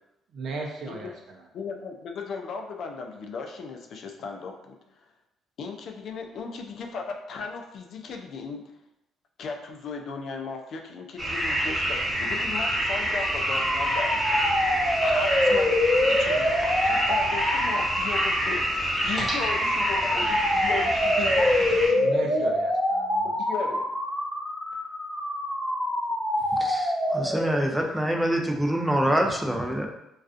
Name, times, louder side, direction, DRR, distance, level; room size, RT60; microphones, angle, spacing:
voice 1, 0.3-1.4 22.0-23.3, right 3 dB, 65° right, 1 dB, 0.5 m, -37 dB
voice 2, 1.5-5.1 5.6-8.6 9.4-14.4 15.0-22.6 23.2-23.8, left 4 dB, 65° left, 3 dB, 0.3 m, -36 dB
sound 1, 11.2-21.9, equal, 30° right, 1.2 m, -27 dB
sound 2, 13.0-27.7, left 1 dB, 25° left, 0.8 m, -26 dB
voice 3, 26.5-29.9, right 1 dB, 5° right, 2 dB, 0.5 m, -25 dB
2.3 x 2.3 x 2.4 m, 0.85 s
supercardioid pair, 65°, 0 cm